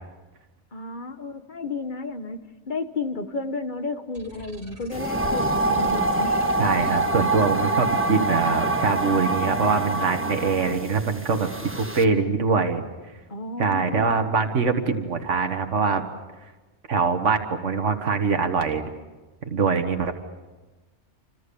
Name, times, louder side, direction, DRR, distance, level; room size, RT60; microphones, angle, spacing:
voice 1, 0.7-2.4 2.7-6.3 13.3-14.1, left 3 dB, 40° left, 8 dB, 1.6 m, -32 dB
sound 1, 4.1-7.5, right 1 dB, 55° right, 2.8 m, -44 dB
sound 2, 4.9-12.0, right 2 dB, 10° right, 1.4 m, -25 dB
voice 2, 6.6-12.8 13.6-16.1 16.9-18.9 19.5-20.1, right 5 dB, 80° right, 6 dB, 1.9 m, -23 dB
29.0 x 26.5 x 7.0 m, 1.2 s
omnidirectional pair, 1.2 m